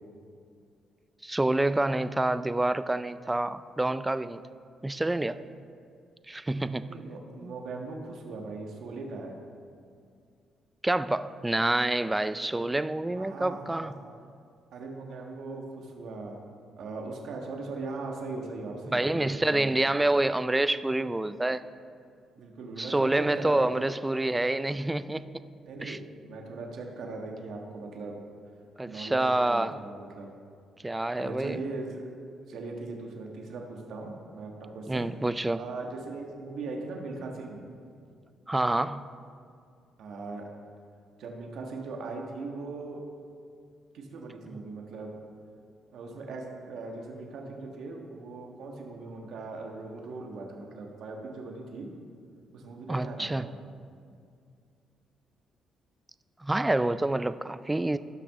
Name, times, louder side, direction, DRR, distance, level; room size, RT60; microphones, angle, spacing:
voice 1, 1.2-4.4 4.8-5.4 6.3-7.0 7.4-7.5 10.8-14.0 18.9-21.6 22.8-25.2 25.8-26.0 28.8-29.8 30.8-31.6 34.9-35.6 38.5-39.1 52.9-53.5 56.4-58.0, right 2 dB, 15° right, 13 dB, 0.4 m, -27 dB
voice 2, 6.8-9.3 13.1-13.9 14.7-16.4 16.8-19.9 22.3-23.9 25.6-28.2 28.8-30.3 31.1-32.1 32.5-35.1 35.6-37.6 40.0-40.5 41.2-43.0 43.9-45.2 45.9-51.9 52.5-53.5, right 3 dB, 75° right, 1 dB, 1.5 m, -39 dB
17.5 x 6.0 x 3.7 m, 2.3 s
cardioid pair, 90°, 0 cm